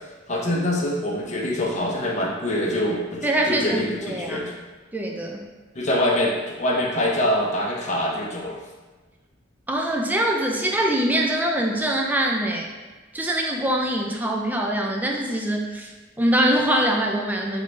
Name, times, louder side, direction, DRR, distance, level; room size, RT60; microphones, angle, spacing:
voice 1, 0.3-4.5 5.7-8.6, left 1 dB, 35° left, -3 dB, 0.7 m, -24 dB
voice 2, 3.2-4.5 4.9-5.5 9.7-12.7 13.1-15.9 16.2-17.6, right 1 dB, 10° right, 0 dB, 0.5 m, -23 dB
3.9 x 3.7 x 3.2 m, 1.3 s
head